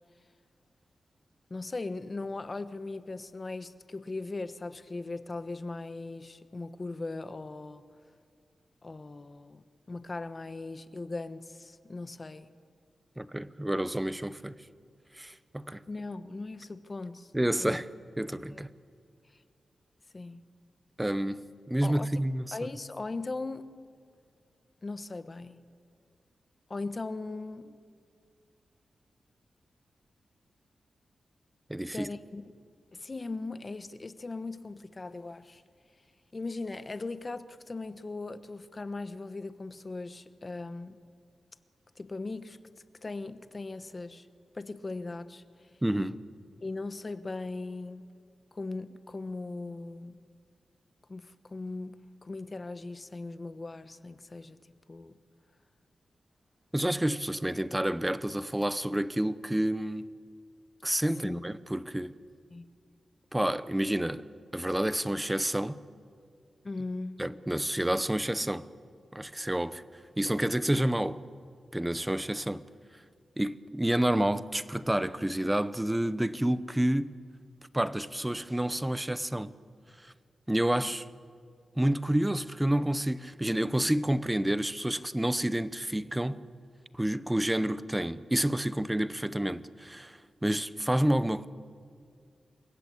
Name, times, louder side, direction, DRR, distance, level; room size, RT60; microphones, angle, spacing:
voice 1, 1.5-7.8 8.8-12.5 15.9-17.3 17.6-17.8 18.5-18.6 20.1-20.4 21.8-22.1 22.5-23.7 24.8-25.6 26.7-27.8 31.9-32.4 32.9-35.6 36.3-41.0 42.0-42.6 43.0-44.3 44.5-45.4 46.6-48.1 48.5-50.2 51.1-54.6 54.9-55.1 61.2-61.4 62.5-62.7 66.6-67.2, left 3 dB, 30° left, 1.1 m, -39 dB
voice 2, 13.2-14.6 15.1-15.8 17.3-17.9 18.2-18.7 21.0-22.5 31.7-32.1 45.8-46.2 56.7-60.1 60.8-62.1 63.3-64.2 64.5-65.8 67.2-68.7 69.1-69.8 70.2-71.2 71.7-72.6 73.4-77.1 77.7-79.5 80.0-80.1 80.5-81.1 81.8-86.4 86.9-91.5, right 1 dB, 10° right, 0.8 m, -29 dB
29.0 x 23.0 x 8.5 m
wide cardioid pair, 130°, 0 cm